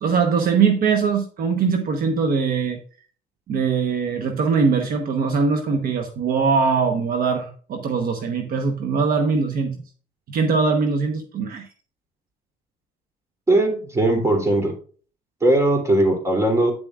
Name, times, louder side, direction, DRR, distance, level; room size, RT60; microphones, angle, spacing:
voice 1, 0.0-2.8 3.5-9.8 10.3-11.7, right 5 dB, 60° right, 5 dB, 1.1 m, -21 dB
voice 2, 13.5-14.7 15.4-16.7, right 1 dB, 15° right, 2 dB, 3.0 m, -19 dB
9.6 x 7.2 x 2.4 m, 0.41 s
cardioid pair, 110°, 17 cm